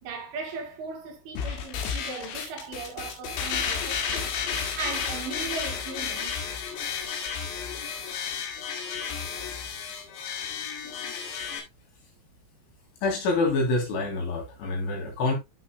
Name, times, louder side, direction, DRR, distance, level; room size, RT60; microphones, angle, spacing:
voice 1, 0.0-4.4 4.8-6.4, right 4 dB, 70° right, 4.6 m, -37 dB
sound 1, 1.4-11.6, left 6 dB, 90° left, 4.6 m, -32 dB
voice 2, 13.0-15.4, left 3 dB, 65° left, 5.6 m, -26 dB
12.5 x 6.5 x 2.2 m
omnidirectional pair, 6.0 m